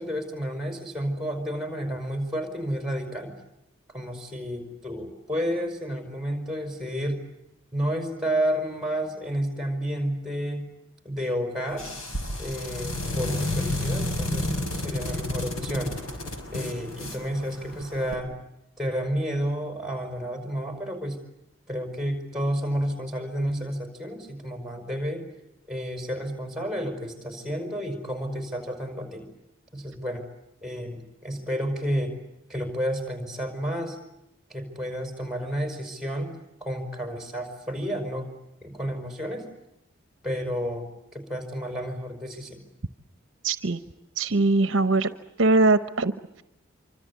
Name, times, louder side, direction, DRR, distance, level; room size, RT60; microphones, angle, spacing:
voice 1, 0.0-3.3 3.9-7.2 7.7-10.7 11.0-11.9 12.4-15.9 16.5-18.3 18.8-21.2 21.7-25.2 25.7-29.3 29.7-30.2 30.6-32.1 32.5-34.0 34.5-36.3 36.6-38.3 38.6-39.5 40.2-40.9 41.1-42.6, equal, ahead, 5 dB, 5.2 m, -31 dB
sound 1, 11.7-18.1, left 1 dB, 90° left, 6.2 m, -31 dB
voice 2, 43.4-43.8 44.2-45.1 45.4-46.4, right 3 dB, 65° right, 12 dB, 0.9 m, -22 dB
26.5 x 25.0 x 8.4 m, 0.89 s
head